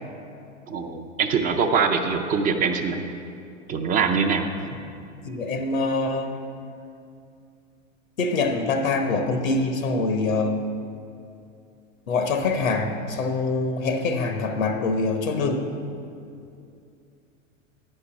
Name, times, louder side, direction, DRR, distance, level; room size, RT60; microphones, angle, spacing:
voice 1, 0.7-3.0 3.7-4.5, right 5 dB, 20° right, 5 dB, 0.5 m, -23 dB
voice 2, 5.2-6.4 8.2-10.6 12.1-15.7, left 3 dB, 85° left, 6 dB, 1.0 m, -24 dB
9.7 x 5.4 x 5.9 m, 2.5 s
hypercardioid pair, 105°, 39 cm